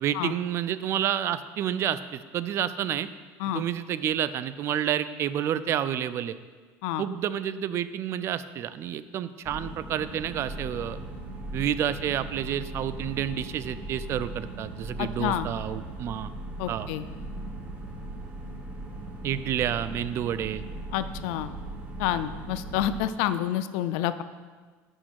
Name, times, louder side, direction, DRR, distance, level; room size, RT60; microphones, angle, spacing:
voice 1, 0.0-3.1 3.5-6.4 7.0-11.0 11.5-16.3 16.7-16.9 19.2-20.6, right 10 dB, 45° right, 14 dB, 0.4 m, -29 dB
sound 1, 9.4-23.0, right 1 dB, 25° right, 1.5 m, -38 dB
voice 2, 15.0-15.5 16.6-17.0 20.9-21.5 22.0-24.2, left 11 dB, 85° left, 12 dB, 0.4 m, -28 dB
6.3 x 5.6 x 6.3 m, 1.5 s
cardioid pair, 135°, 6 cm